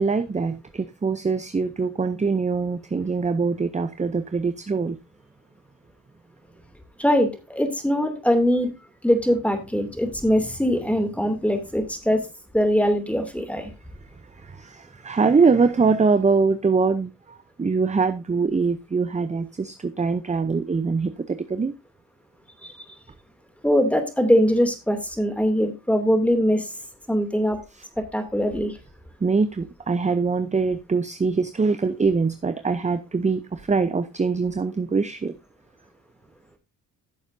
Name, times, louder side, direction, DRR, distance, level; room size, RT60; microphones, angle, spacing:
voice 1, 0.0-5.0 14.4-21.7 29.2-35.3, right 4 dB, 20° right, 0.6 m, -23 dB
voice 2, 7.0-8.7 9.0-12.2 12.5-13.7 22.6-22.7 23.6-26.7 27.1-27.6 28.0-28.8, equal, 5° left, 2.6 m, -22 dB
14.5 x 7.1 x 2.7 m
cardioid pair, 75°, 38 cm